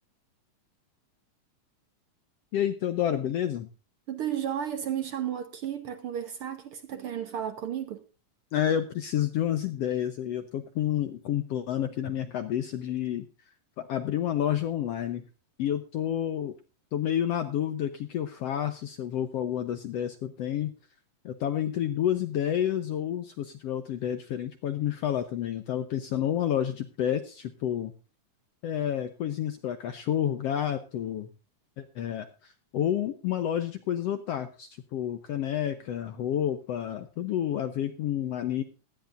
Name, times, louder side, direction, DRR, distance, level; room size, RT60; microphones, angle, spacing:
voice 1, 2.5-3.7 8.5-13.3 13.8-15.2 15.6-16.5 16.9-20.7 21.2-27.9 28.6-31.3 31.8-38.6, left 10 dB, 75° left, 1.5 m, -29 dB
voice 2, 4.1-8.0, right 9 dB, 70° right, 1.3 m, -33 dB
17.5 x 13.0 x 2.5 m
omnidirectional pair, 3.8 m